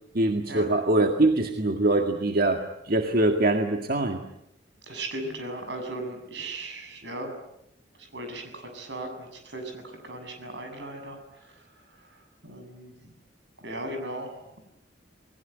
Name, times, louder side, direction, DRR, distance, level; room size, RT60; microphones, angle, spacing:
voice 1, 0.1-4.2, right 2 dB, 55° right, 4 dB, 2.0 m, -23 dB
voice 2, 4.9-7.3 8.0-11.5 12.4-12.9 13.6-14.3, right 1 dB, 75° right, 6 dB, 7.2 m, -37 dB
29.0 x 21.0 x 9.2 m, 0.82 s
head